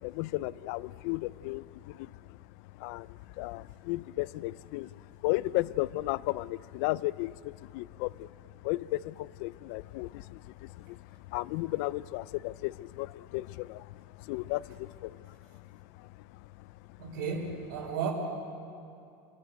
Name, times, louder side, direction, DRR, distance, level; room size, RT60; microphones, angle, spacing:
voice 1, 0.0-2.4 2.8-4.9 5.2-8.3 8.6-11.0 11.3-15.4 16.0-16.1, left 19 dB, 55° left, 20 dB, 0.4 m, -34 dB
voice 2, 17.0-18.1, right 6 dB, 85° right, -1 dB, 4.6 m, -33 dB
27.5 x 12.0 x 8.1 m, 2.5 s
supercardioid pair, 160°, 10 cm